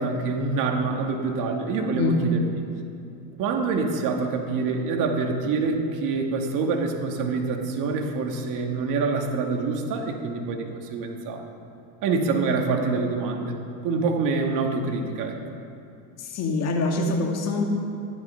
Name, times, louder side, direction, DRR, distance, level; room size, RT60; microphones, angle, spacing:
voice 1, 0.0-2.4 3.4-11.4 12.0-13.6 13.8-15.4, right 4 dB, 50° right, 2 dB, 2.1 m, -26 dB
voice 2, 16.2-17.6, left 3 dB, 40° left, 2 dB, 2.0 m, -24 dB
14.0 x 12.0 x 5.8 m, 2.6 s
supercardioid pair, 130°, 40 cm